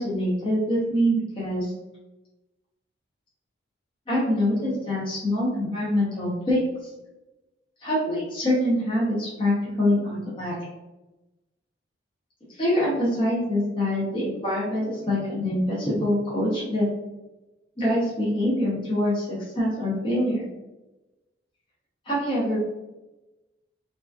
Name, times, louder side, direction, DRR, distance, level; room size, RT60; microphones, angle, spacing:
voice 1, 0.0-1.7 4.1-6.6 7.8-10.5 12.6-16.9 17.8-20.5 22.1-22.6, left 1 dB, 25° left, -7 dB, 0.6 m, -25 dB
2.8 x 2.2 x 2.3 m, 1.0 s
head